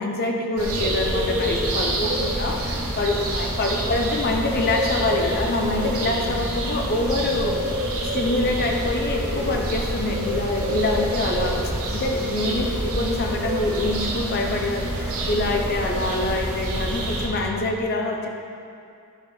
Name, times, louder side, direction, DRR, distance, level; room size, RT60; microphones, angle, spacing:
voice 1, 0.0-7.5 8.1-11.6 11.9-18.3, left 2 dB, 45° left, 1 dB, 0.6 m, -25 dB
sound 1, 0.6-17.3, right 1 dB, 70° right, 1.3 m, -27 dB
10.5 x 4.6 x 3.9 m, 2.4 s
head